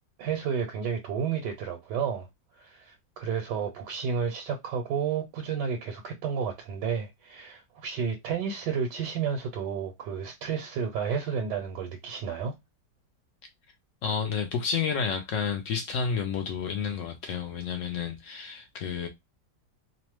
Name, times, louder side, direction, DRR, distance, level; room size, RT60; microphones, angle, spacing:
voice 1, 0.2-2.3 2.6-12.5, right 6 dB, 85° right, 1.2 m, -31 dB
voice 2, 14.0-19.1, left 6 dB, 75° left, 0.7 m, -30 dB
2.9 x 2.0 x 3.0 m
omnidirectional pair, 1.8 m